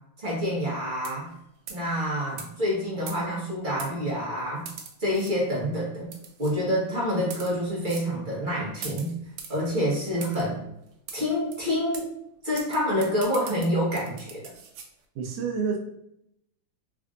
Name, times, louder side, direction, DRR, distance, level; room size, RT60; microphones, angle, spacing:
voice 1, 0.2-1.3 1.7-4.7 5.0-6.1 6.4-9.1 9.5-10.6 11.1-12.1 12.4-14.5, equal, 35° right, -5 dB, 0.8 m, -27 dB
sound 1, 1.0-1.3 1.7-1.9 2.4-2.5 3.1-3.4 3.8-3.9 4.7-5.3 6.1-6.5 7.2-7.5 7.9-8.1 8.8-9.6 10.2-10.4 11.1-11.2 11.5-11.6 11.9-12.1 12.6-14.9, right 6 dB, 85° right, 1.5 m, -41 dB
voice 2, 15.1-15.8, right 5 dB, 70° right, 3 dB, 1.0 m, -28 dB
3.6 x 3.3 x 2.5 m, 0.78 s
omnidirectional pair, 2.4 m